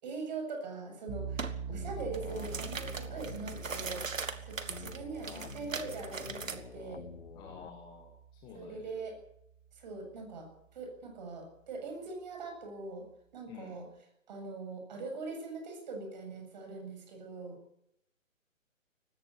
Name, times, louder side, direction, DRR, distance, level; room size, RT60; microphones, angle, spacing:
voice 1, 0.0-4.0 4.4-7.1 8.5-9.2 9.7-13.1 13.3-13.8 14.3-17.6, right 3 dB, 35° right, 4 dB, 7.7 m, -42 dB
sound 1, 1.1-9.9, right 6 dB, 15° right, 2.1 m, -45 dB
sound 2, 1.4-1.6 2.0-6.6, right 5 dB, 75° right, 2.5 m, -40 dB
sound 3, 1.7-4.1 4.7-7.7, left 6 dB, 55° left, 1.3 m, -48 dB
voice 2, 7.4-8.9 13.5-13.8, left 6 dB, 10° left, 1 dB, 2.0 m, -51 dB
18.5 x 16.5 x 8.7 m, 0.76 s
hypercardioid pair, 160°, 39 cm